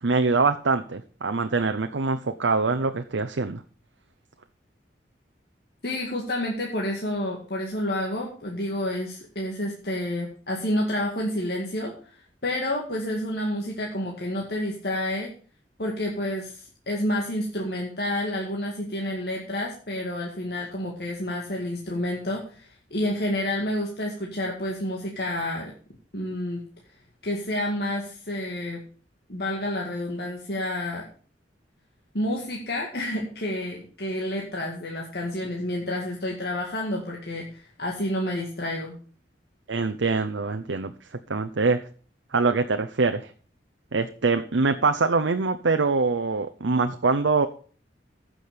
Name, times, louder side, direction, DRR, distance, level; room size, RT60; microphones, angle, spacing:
voice 1, 0.0-3.6 39.7-40.9 41.3-41.8 42.3-43.3 43.9-47.5, right 4 dB, 85° right, 8 dB, 0.7 m, -24 dB
voice 2, 5.8-15.3 15.8-25.7 26.1-26.6 27.2-28.8 29.3-31.0 32.1-39.0, left 1 dB, 60° left, -1 dB, 2.0 m, -29 dB
15.0 x 6.3 x 5.1 m, 0.42 s
head